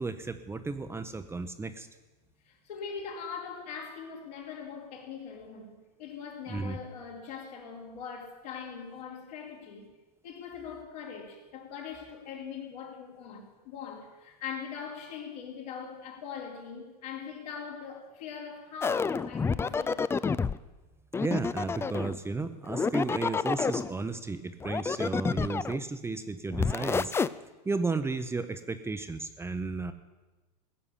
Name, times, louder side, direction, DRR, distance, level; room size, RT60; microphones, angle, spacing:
voice 1, 0.0-1.9 6.5-6.8 21.2-27.1 27.6-29.9, right 3 dB, 10° right, 0.8 m, -33 dB
voice 2, 2.4-9.9 10.2-20.0, left 6 dB, 70° left, 4.4 m, -41 dB
sound 1, 18.8-20.6 21.1-22.2 22.7-23.9 24.6-25.8 26.5-27.3, left 5 dB, 10° left, 0.4 m, -29 dB
15.5 x 7.0 x 9.9 m
hypercardioid pair, 100°, 21 cm